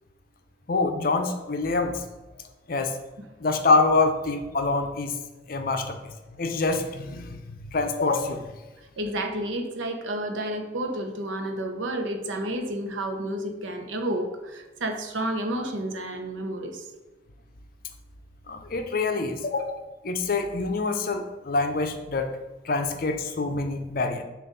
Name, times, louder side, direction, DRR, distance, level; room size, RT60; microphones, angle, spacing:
voice 1, 0.7-2.0 2.7-2.9 3.4-5.1 5.5-6.0 6.4-8.4 18.5-22.3 22.6-24.2, left 3 dB, 45° left, 5 dB, 0.6 m, -26 dB
voice 2, 9.0-16.9, right 1 dB, 80° right, 5 dB, 0.8 m, -30 dB
7.2 x 2.5 x 5.4 m, 1.1 s
head